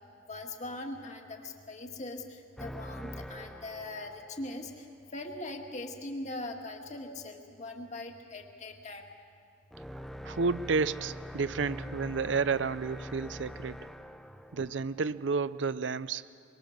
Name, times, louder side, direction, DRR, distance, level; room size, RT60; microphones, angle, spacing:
voice 1, 0.3-4.9 5.1-9.0, left 2 dB, 40° left, 3 dB, 2.0 m, -41 dB
sound 1, 2.6-4.6 9.7-15.3, equal, ahead, 0.5 m, -44 dB
voice 2, 10.2-13.8 14.5-16.2, right 4 dB, 70° right, 16 dB, 0.6 m, -31 dB
24.5 x 23.5 x 6.6 m, 2.3 s
head